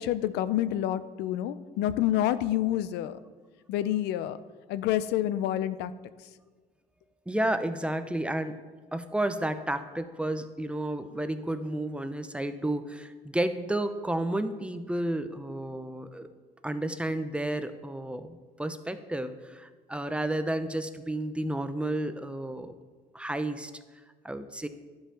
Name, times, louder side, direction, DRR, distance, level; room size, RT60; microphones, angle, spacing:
voice 1, 0.0-3.2 3.7-4.4 4.7-5.9, left 12 dB, 85° left, 14 dB, 0.5 m, -28 dB
voice 2, 7.3-8.6 8.9-16.3 16.6-22.7 23.1-23.7 24.2-24.7, right 1 dB, 5° right, 10 dB, 0.7 m, -31 dB
11.0 x 5.6 x 7.1 m, 1.4 s
cardioid pair, 110°, 17 cm